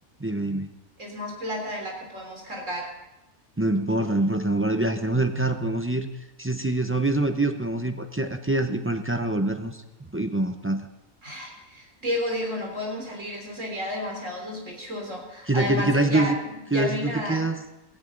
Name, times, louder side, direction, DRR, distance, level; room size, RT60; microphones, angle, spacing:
voice 1, 0.2-0.7 3.6-6.1 6.4-9.8 10.1-10.8 15.5-16.4 16.7-17.6, right 2 dB, 20° right, 7 dB, 0.4 m, -25 dB
voice 2, 1.0-2.9 11.2-17.5, left 1 dB, 55° right, 0 dB, 4.2 m, -32 dB
17.0 x 16.5 x 3.9 m, 0.96 s
omnidirectional pair, 1.5 m